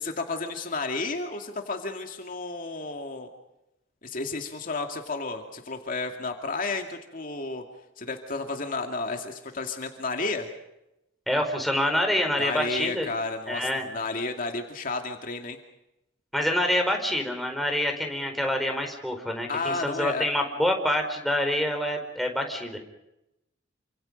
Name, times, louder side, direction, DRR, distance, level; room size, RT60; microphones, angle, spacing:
voice 1, 0.0-3.3 4.0-7.6 8.0-10.5 12.4-15.6 19.5-20.3, left 3 dB, 45° left, 4 dB, 2.3 m, -32 dB
voice 2, 11.3-13.1 13.5-13.9 16.3-22.8, left 1 dB, ahead, 3 dB, 4.6 m, -26 dB
29.0 x 26.0 x 5.3 m, 0.89 s
head